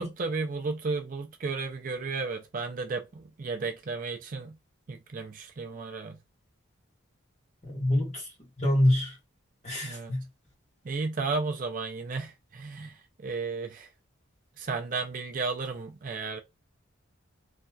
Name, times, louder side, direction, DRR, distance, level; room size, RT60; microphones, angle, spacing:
voice 1, 0.0-4.6 4.9-6.2 9.8-10.1 10.8-13.9 14.6-16.4, right 4 dB, 40° right, 0.4 m, -33 dB
voice 2, 7.6-9.2 9.6-10.2, left 1 dB, 30° left, 1.3 m, -26 dB
3.1 x 2.6 x 2.3 m
head